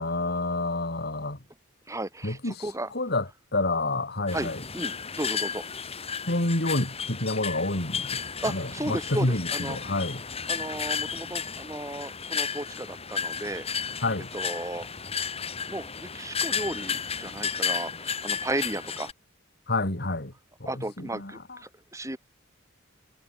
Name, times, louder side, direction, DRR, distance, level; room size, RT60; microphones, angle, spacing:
voice 1, 0.0-1.4 2.2-3.2 3.5-4.6 6.3-10.2 14.0-14.3 19.7-20.3 20.6-20.7 21.1-21.3, left 2 dB, 50° left, 3.3 m, -28 dB
voice 2, 1.9-2.9 4.3-5.6 8.1-9.8 10.5-13.7 14.2-14.9 15.7-19.1 20.6-22.2, right 1 dB, 15° right, 4.7 m, -35 dB
sound 1, 4.3-19.1, left 6 dB, 30° left, 3.3 m, -33 dB
head